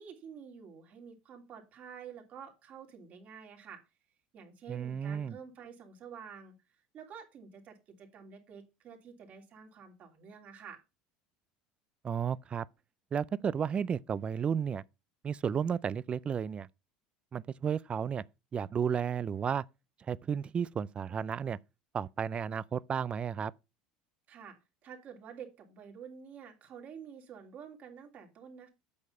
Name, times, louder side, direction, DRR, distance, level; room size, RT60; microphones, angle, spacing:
voice 1, 0.0-3.8 4.3-6.5 6.9-10.8 24.3-24.6 24.8-28.7, right 7 dB, 50° right, 3.0 m, -49 dB
voice 2, 4.7-5.4 12.0-12.7 13.1-14.8 15.2-16.7 17.3-18.2 18.5-19.6 20.1-21.6 21.9-23.5, right 7 dB, 30° right, 0.4 m, -33 dB
8.5 x 6.4 x 5.5 m
supercardioid pair, 105°, 4 cm